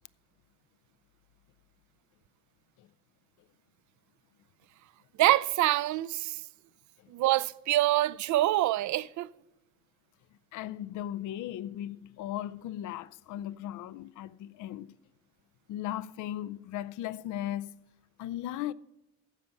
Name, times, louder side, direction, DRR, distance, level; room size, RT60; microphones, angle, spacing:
voice 1, 5.2-6.4 7.1-9.3, right 16 dB, 70° right, 0.5 m, -25 dB
voice 2, 10.5-14.9 15.7-17.8 18.2-18.7, left 12 dB, 80° left, 0.5 m, -37 dB
15.0 x 5.3 x 5.6 m
cardioid pair, 90°, 30 cm